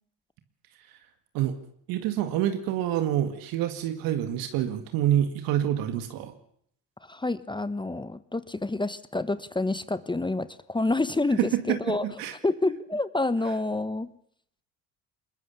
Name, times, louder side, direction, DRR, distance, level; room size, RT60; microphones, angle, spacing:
voice 1, 1.9-6.3 11.4-12.4, right 11 dB, 75° right, 8 dB, 2.0 m, -27 dB
voice 2, 7.0-12.1 12.4-14.1, left 2 dB, 15° left, 15 dB, 1.1 m, -28 dB
21.5 x 20.5 x 7.0 m, 0.68 s
supercardioid pair, 65°, 36 cm